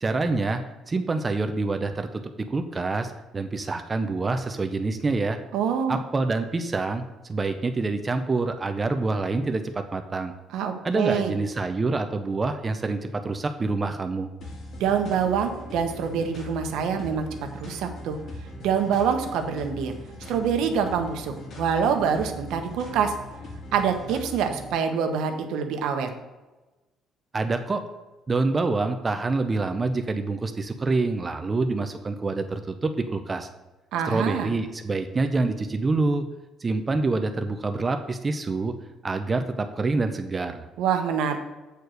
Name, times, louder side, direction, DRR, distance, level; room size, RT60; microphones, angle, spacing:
voice 1, 0.0-2.1 2.5-5.4 5.9-7.0 7.3-10.3 10.8-14.3 27.3-27.8 28.3-33.5 34.1-36.2 36.6-38.7 39.0-40.7, right 3 dB, 20° right, 7 dB, 0.6 m, -26 dB
voice 2, 5.5-6.0 10.5-11.3 14.8-17.3 17.5-18.2 18.6-19.9 20.3-23.1 23.7-26.1 33.9-34.5 40.8-41.4, right 7 dB, 80° right, 5 dB, 1.1 m, -25 dB
sound 1, 14.4-24.7, left 1 dB, 50° left, 2.1 m, -40 dB
8.1 x 4.7 x 6.4 m, 1.1 s
cardioid pair, 155°, 0 cm